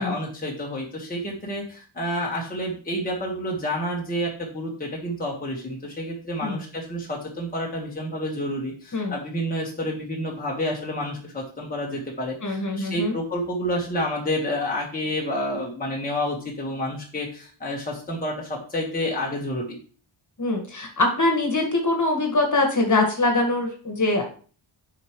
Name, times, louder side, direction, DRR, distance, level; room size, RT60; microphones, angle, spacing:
voice 1, 0.0-19.7, equal, 20° left, -3 dB, 1.4 m, -29 dB
voice 2, 12.4-13.1 20.4-24.2, left 2 dB, 40° left, 3 dB, 1.7 m, -23 dB
7.9 x 5.1 x 3.1 m, 0.40 s
wide cardioid pair, 105°, 48 cm